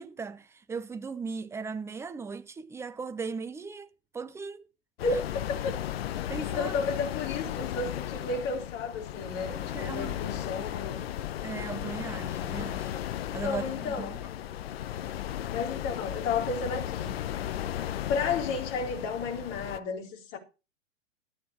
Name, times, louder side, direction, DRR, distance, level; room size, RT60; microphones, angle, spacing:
voice 1, 0.0-4.7 6.3-6.7 9.5-10.2 11.4-12.9 13.3-14.3, right 5 dB, 5° right, 0.8 m, -38 dB
sound 1, 5.0-19.8, left 11 dB, 50° left, 0.9 m, -35 dB
voice 2, 6.4-11.0 13.4-14.2 15.5-17.2 18.1-20.4, left 4 dB, 35° left, 4.3 m, -32 dB
12.5 x 9.2 x 5.0 m
figure-of-eight pair, 110°, 38 cm